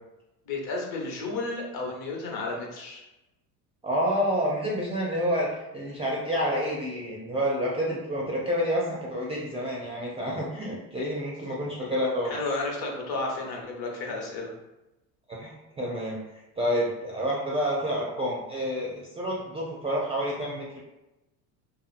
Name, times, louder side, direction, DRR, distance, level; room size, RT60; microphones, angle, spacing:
voice 1, 0.4-3.0 12.2-14.5, left 3 dB, 50° left, -1 dB, 0.9 m, -32 dB
voice 2, 3.8-12.4 15.3-16.2 16.6-20.8, equal, 15° right, -4 dB, 0.4 m, -29 dB
2.8 x 2.5 x 2.4 m, 0.98 s
hypercardioid pair, 80°, 49 cm